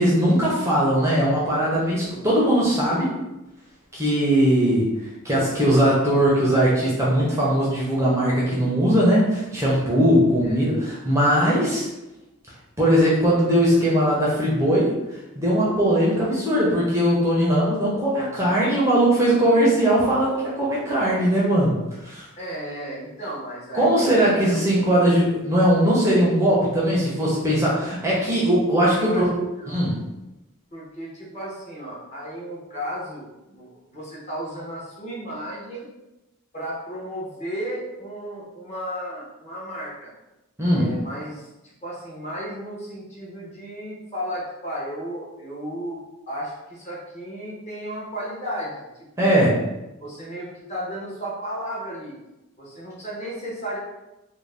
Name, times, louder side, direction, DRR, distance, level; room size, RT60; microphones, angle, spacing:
voice 1, 0.0-3.1 3.9-4.9 5.2-11.9 12.8-21.7 22.0-22.3 23.7-29.3 29.7-30.0 40.6-40.9 49.2-49.5, equal, 15° right, -6 dB, 0.5 m, -20 dB
voice 2, 10.4-10.8 22.4-25.1 29.0-29.3 29.6-29.8 30.7-35.9 36.5-40.1 40.7-48.8 49.2-49.4 50.0-52.1 52.6-53.8, equal, 30° left, -6 dB, 0.8 m, -34 dB
2.5 x 2.0 x 3.2 m, 0.97 s
head